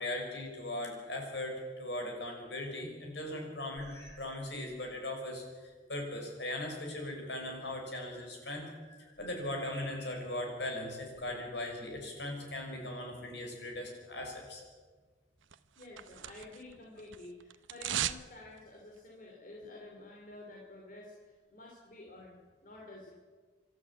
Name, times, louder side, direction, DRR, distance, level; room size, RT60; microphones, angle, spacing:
voice 1, 0.0-3.9 4.2-8.6 9.2-14.6, left 1 dB, 65° left, 2 dB, 5.7 m, -39 dB
sound 1, 3.7-4.4 4.7-5.0 5.7-5.8 8.2-10.5 11.1-12.1, equal, 15° left, 3.5 m, -56 dB
sound 2, 15.5-16.7 17.0-18.3 18.6-18.7, right 11 dB, 85° right, 0.8 m, -37 dB
voice 2, 15.8-23.1, left 2 dB, 45° left, -2 dB, 2.9 m, -50 dB
26.0 x 12.5 x 8.5 m, 1.5 s
head